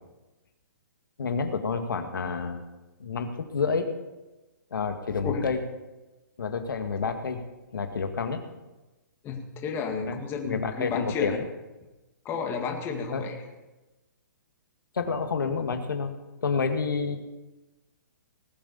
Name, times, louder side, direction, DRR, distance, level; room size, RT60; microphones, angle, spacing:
voice 1, 1.2-2.6 3.0-3.9 4.7-5.6 6.4-7.4 7.7-8.4 10.1-10.2 10.4-11.5 13.1-13.2 15.0-16.1 16.4-17.2, left 5 dB, 80° left, 6 dB, 1.9 m, -29 dB
voice 2, 9.2-11.4 12.3-13.3, left 5 dB, 20° left, 3 dB, 2.1 m, -32 dB
19.0 x 8.5 x 6.9 m, 1.1 s
hypercardioid pair, 145°, 11 cm